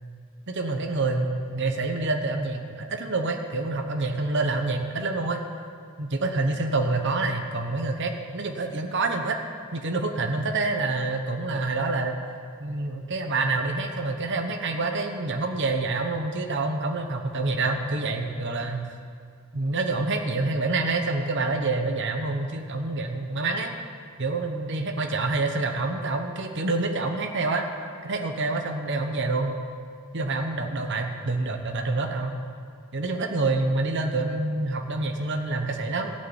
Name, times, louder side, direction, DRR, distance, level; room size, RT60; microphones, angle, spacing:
voice 1, 0.5-5.4 6.0-9.4 9.7-12.2 12.6-18.9 19.5-23.7 24.2-27.6 28.0-29.6 30.1-32.3 32.9-36.1, right 3 dB, 55° right, 4 dB, 1.0 m, -27 dB
15.0 x 6.6 x 9.0 m, 2.2 s
head